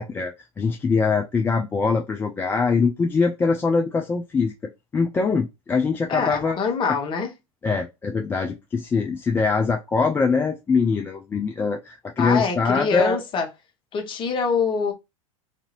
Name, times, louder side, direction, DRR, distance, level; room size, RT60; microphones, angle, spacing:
voice 1, 0.0-4.5 4.9-6.6 7.6-13.2, left 4 dB, 15° left, 0.3 m, -23 dB
voice 2, 6.1-7.3 12.2-13.5 13.9-14.9, left 5 dB, 30° left, 0.8 m, -24 dB
2.6 x 2.5 x 2.9 m
figure-of-eight pair, 85°, 18 cm